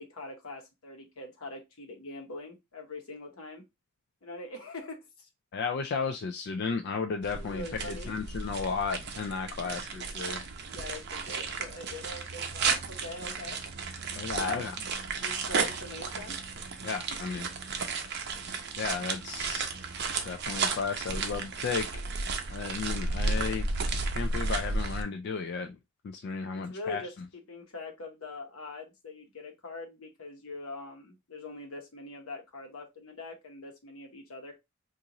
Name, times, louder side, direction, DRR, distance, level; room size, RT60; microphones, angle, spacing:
voice 1, 0.0-3.6 4.2-5.3 7.3-8.1 9.6-9.8 10.3-13.6 14.3-16.4 17.1-17.2 26.5-34.6, left 2 dB, 80° left, 1.0 m, -43 dB
voice 2, 5.5-10.4 14.1-14.8 16.8-17.5 18.8-19.7 20.3-21.9 22.5-23.7 24.1-25.8 26.0-27.0, left 5 dB, 50° left, 0.3 m, -34 dB
sound 1, 7.2-25.0, right 4 dB, 50° right, 0.6 m, -33 dB
2.9 x 2.5 x 3.7 m
head